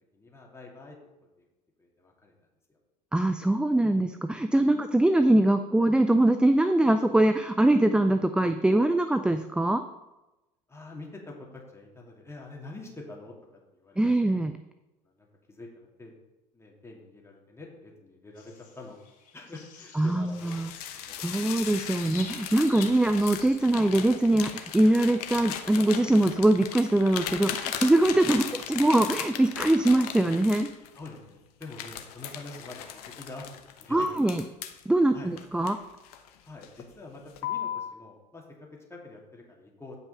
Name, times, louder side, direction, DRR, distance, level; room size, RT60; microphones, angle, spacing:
voice 1, 0.1-1.0 1.8-2.3 4.6-4.7 10.7-13.3 13.7-14.2 15.1-16.1 16.5-19.0 19.3-20.4 21.0-21.2 22.7-22.8 30.9-34.1 35.1-35.3 36.4-40.0, left 2 dB, 10° left, -2 dB, 2.7 m, -46 dB
voice 2, 3.1-9.8 14.0-14.5 20.0-20.7 21.2-30.7 33.9-34.4 34.9-35.8, right 1 dB, 5° right, 9 dB, 0.4 m, -23 dB
sound 1, 18.4-23.6, left 5 dB, 40° left, 2.9 m, -48 dB
sound 2, 20.3-31.1 31.6-34.8 35.4-36.3 36.6-36.9 37.4-37.9, left 9 dB, 65° left, 0.9 m, -37 dB
9.5 x 5.5 x 5.6 m, 1.0 s
figure-of-eight pair, 65°, 21 cm